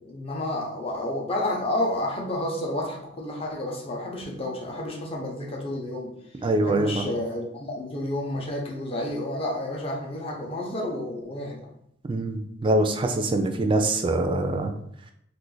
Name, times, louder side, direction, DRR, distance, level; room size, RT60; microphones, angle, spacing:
voice 1, 0.0-11.7, left 1 dB, 30° left, -1 dB, 0.6 m, -30 dB
voice 2, 6.4-6.9 12.1-14.7, right 2 dB, 25° right, 6 dB, 0.3 m, -24 dB
2.5 x 2.4 x 3.8 m, 0.72 s
head